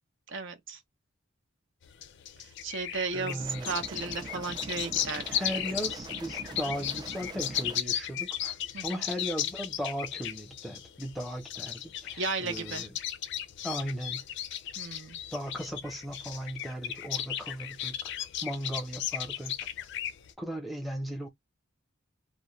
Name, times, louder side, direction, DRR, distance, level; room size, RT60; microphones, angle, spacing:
voice 1, 0.3-0.8 2.4-5.2 5.5-5.6 8.7-9.0 12.2-12.8 14.8-15.2, right 4 dB, 65° right, 0.7 m, -35 dB
sound 1, 1.8-20.3, left 10 dB, 60° left, 0.4 m, -36 dB
voice 2, 3.1-3.7 5.2-8.6 8.8-12.9 13.6-14.2 15.3-18.0 18.4-19.6 20.4-21.3, equal, ahead, 0.7 m, -37 dB
sound 2, 3.4-7.8, right 3 dB, 20° right, 0.4 m, -43 dB
2.3 x 2.1 x 2.9 m
head